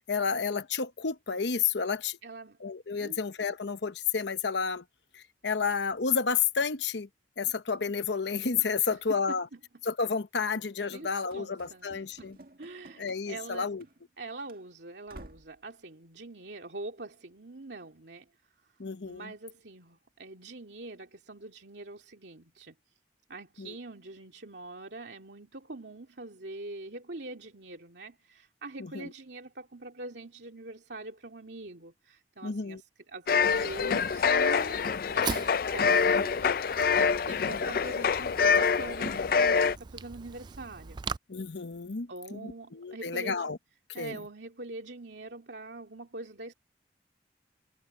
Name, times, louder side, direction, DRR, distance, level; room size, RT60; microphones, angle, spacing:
voice 1, 0.0-2.2 2.6-4.8 5.1-7.1 7.4-9.5 9.8-12.4 13.0-13.8 18.8-19.3 23.6-23.7 28.8-29.1 32.4-32.8 36.2-36.3 37.4-37.6 41.3-43.6 44.0-44.2, left 5 dB, 85° left, 0.9 m, -31 dB
voice 2, 2.2-2.6 2.9-3.2 8.8-9.6 10.9-13.7 14.2-18.3 19.0-22.7 23.3-41.0 42.1-43.4 43.9-46.5, right 2 dB, 80° right, 2.4 m, -44 dB
Run / Slam, 11.3-14.2 14.5-14.6 15.1-15.6, right 1 dB, 55° right, 1.9 m, -52 dB
sound 1, 33.3-39.8, left 6 dB, 55° left, 0.4 m, -25 dB
Fire, 33.4-41.2, right 5 dB, 25° right, 0.3 m, -42 dB
head